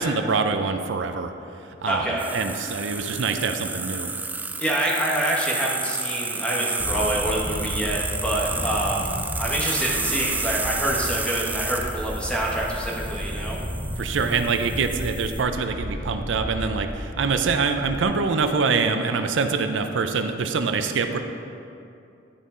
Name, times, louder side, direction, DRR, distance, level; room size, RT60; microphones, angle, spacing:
voice 1, 0.0-1.3 1.8-4.1 14.0-21.2, right 4 dB, 90° right, 7 dB, 0.5 m, -25 dB
voice 2, 1.9-2.3 4.6-13.6, right 1 dB, 5° left, -3 dB, 1.1 m, -26 dB
sound 1, 2.2-15.4, right 3 dB, 10° right, 0.3 m, -31 dB
sound 2, 6.8-18.0, equal, 25° left, 0.9 m, -33 dB
10.0 x 5.5 x 3.7 m, 2.6 s
head